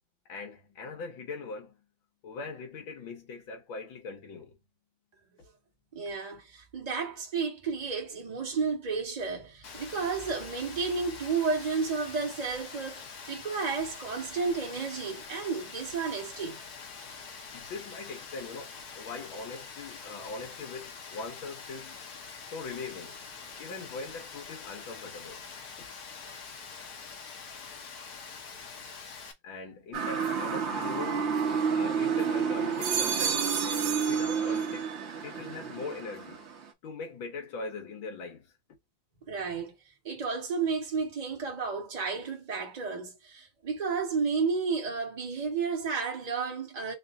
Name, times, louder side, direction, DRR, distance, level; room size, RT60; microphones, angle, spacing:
voice 1, 0.3-1.8 2.2-4.6 17.5-22.0 22.5-23.2 23.6-25.4 25.8-25.9 29.4-31.3 31.7-35.0 35.2-36.4 36.8-38.5, left 4 dB, 85° left, 2.1 m, -41 dB
voice 2, 5.9-16.6 39.3-39.7 40.0-46.9, right 5 dB, 25° right, 1.0 m, -32 dB
Rain, 9.6-29.3, left 5 dB, 60° left, 1.3 m, -45 dB
Motor vehicle (road) / Siren, 29.9-36.7, right 6 dB, 45° right, 0.9 m, -30 dB
sound 1, 31.0-32.1 32.6-35.0 35.4-36.0, right 8 dB, 80° right, 0.7 m, -34 dB
4.2 x 2.7 x 3.6 m
omnidirectional pair, 2.1 m